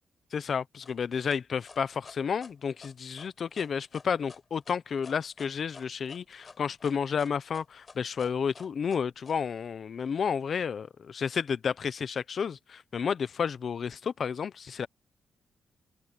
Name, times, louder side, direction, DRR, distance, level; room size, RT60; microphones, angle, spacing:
voice 1, 0.3-14.9, left 6 dB, 55° left, 1.0 m, -31 dB
sound 1, 0.8-9.4, left 4 dB, 35° left, 6.5 m, -51 dB
cardioid pair, 105°, 0 cm